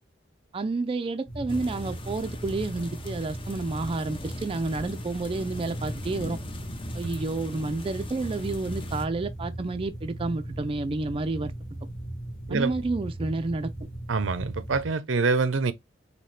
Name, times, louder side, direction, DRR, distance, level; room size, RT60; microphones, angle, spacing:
voice 1, 0.5-6.4 6.9-11.5 12.5-13.7, right 3 dB, 30° right, 0.4 m, -30 dB
sound 1, 1.3-15.0, right 1 dB, 70° left, 1.5 m, -38 dB
sound 2, 1.5-9.0, left 2 dB, 30° left, 0.6 m, -41 dB
voice 2, 14.1-15.7, right 4 dB, 90° right, 0.6 m, -25 dB
4.2 x 2.8 x 3.1 m
head